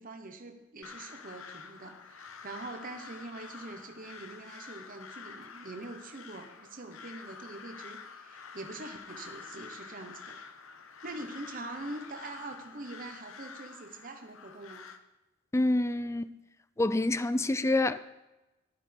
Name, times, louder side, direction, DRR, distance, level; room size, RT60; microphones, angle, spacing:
voice 1, 0.0-10.5 10.8-14.9, right 2 dB, 45° right, 1.1 m, -44 dB
Crow, 0.8-15.0, left 5 dB, 80° left, 0.9 m, -48 dB
voice 2, 15.5-16.3 16.8-18.0, left 2 dB, 15° left, 0.4 m, -27 dB
15.0 x 12.0 x 3.5 m
head